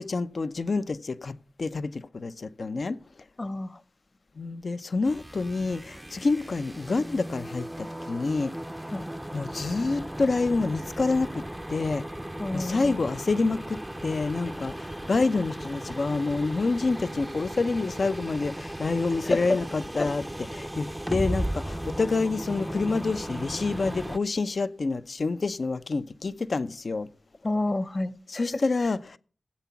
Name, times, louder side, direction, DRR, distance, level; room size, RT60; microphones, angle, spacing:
voice 1, 0.0-3.0 4.4-8.5 9.3-12.0 12.5-27.1 28.3-29.2, left 3 dB, 60° left, 0.7 m, -28 dB
voice 2, 3.4-3.8 8.9-9.1 12.4-13.0 19.3-19.6 20.0-20.1 27.4-28.6, left 2 dB, 40° left, 1.1 m, -29 dB
sound 1, 5.0-24.2, right 1 dB, 10° right, 0.7 m, -36 dB
17.0 x 8.3 x 5.8 m
cardioid pair, 50°, 0 cm